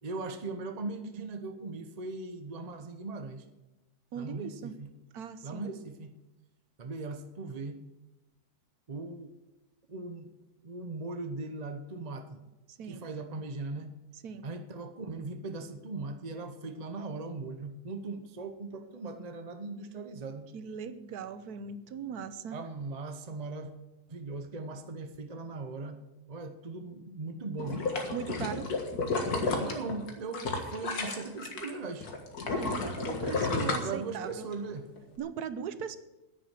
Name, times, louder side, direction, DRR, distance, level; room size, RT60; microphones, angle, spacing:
voice 1, 0.0-3.4 4.1-4.9 5.4-6.1 6.8-7.8 8.9-9.3 9.9-10.3 10.6-12.4 12.8-13.9 14.4-20.5 22.5-23.7 24.1-26.0 26.3-27.8 29.6-32.1 33.8-34.9, right 3 dB, 30° right, 7 dB, 0.8 m, -39 dB
voice 2, 4.1-4.7 5.1-5.7 12.8-13.0 14.2-14.5 20.5-22.6 28.1-28.7 32.4-34.5 35.2-36.0, right 7 dB, 85° right, 12 dB, 1.4 m, -39 dB
sound 1, 27.6-31.7 32.0-34.5 35.0-35.1, left 3 dB, 75° left, 2.2 m, -32 dB
10.5 x 9.8 x 7.5 m, 1.0 s
omnidirectional pair, 1.6 m